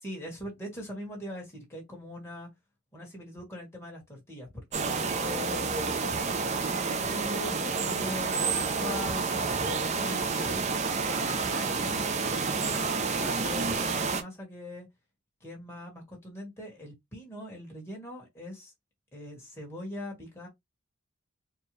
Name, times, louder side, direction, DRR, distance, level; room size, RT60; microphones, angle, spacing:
voice 1, 0.0-2.5 2.9-6.2 6.9-10.6 11.0-14.9 15.4-18.7 19.1-20.5, left 1 dB, 10° left, 1.8 m, -42 dB
sound 1, 4.7-14.2, right 4 dB, 30° right, 0.5 m, -29 dB
4.5 x 2.4 x 3.2 m
head